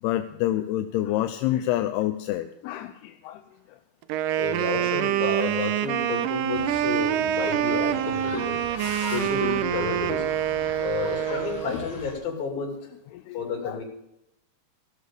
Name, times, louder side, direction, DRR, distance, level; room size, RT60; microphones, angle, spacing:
voice 1, 0.0-3.4 13.1-13.4 13.7-13.8, left 14 dB, 85° left, 8 dB, 2.6 m, -27 dB
Wind instrument woodwind instrument, 4.0-11.8, right 12 dB, 90° right, 1.8 m, -26 dB
voice 2, 4.4-8.6 9.1-10.3 10.8-12.9 13.3-13.8, left 5 dB, 65° left, 0 dB, 4.4 m, -31 dB
sound 1, 6.5-12.1, left 4 dB, 45° left, 3.6 m, -40 dB
16.5 x 6.4 x 6.8 m, 0.87 s
omnidirectional pair, 4.6 m